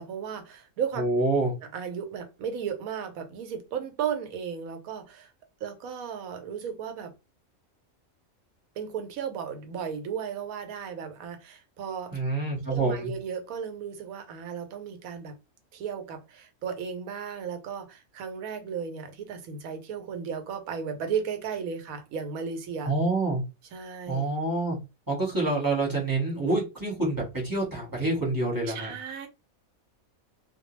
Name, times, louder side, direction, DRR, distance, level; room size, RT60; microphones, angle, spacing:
voice 1, 0.0-1.0 1.7-5.3 5.6-7.1 8.8-12.1 12.7-15.4 15.7-22.9 23.7-24.2 28.7-29.3, right 7 dB, 80° right, 1.1 m, -35 dB
voice 2, 1.0-1.5 12.1-13.1 22.8-23.4 24.1-24.8 25.1-28.9, right 2 dB, 15° right, 0.9 m, -27 dB
2.3 x 2.1 x 3.0 m
omnidirectional pair, 1.5 m